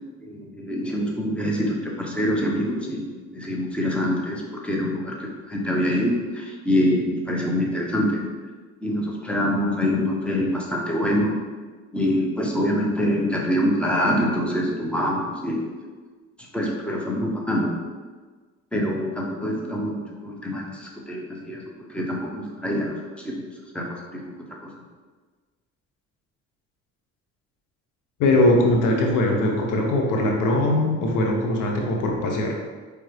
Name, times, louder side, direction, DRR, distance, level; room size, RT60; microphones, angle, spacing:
voice 1, 0.2-3.1 3.3-8.2 8.8-11.4 11.9-15.7 16.5-17.7 18.7-21.6 21.9-23.4 23.7-24.3 24.6-24.7, equal, 5° left, -2 dB, 0.9 m, -25 dB
voice 2, 28.2-32.5, left 1 dB, 90° left, 1 dB, 0.9 m, -21 dB
4.7 x 3.4 x 3.2 m, 1.4 s
cardioid pair, 90°, 30 cm